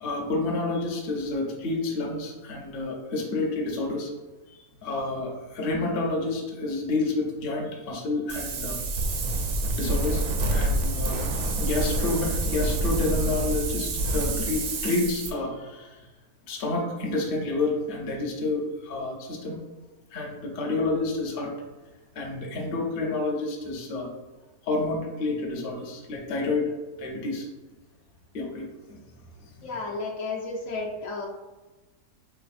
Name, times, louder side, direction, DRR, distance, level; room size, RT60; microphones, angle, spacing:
voice 1, 0.0-4.1 4.5-8.8 9.7-11.3 11.6-16.1 16.5-19.6 20.1-21.5 22.1-24.1 24.6-26.7 27.0-27.5 28.3-28.7 29.4-29.7, left 2 dB, 50° left, 0 dB, 0.7 m, -29 dB
Wind, 8.3-15.3, right 2 dB, 65° right, 0.8 m, -27 dB
voice 2, 29.6-31.3, left 3 dB, 70° left, -1 dB, 1.0 m, -32 dB
3.8 x 3.4 x 2.4 m, 1.1 s
omnidirectional pair, 1.5 m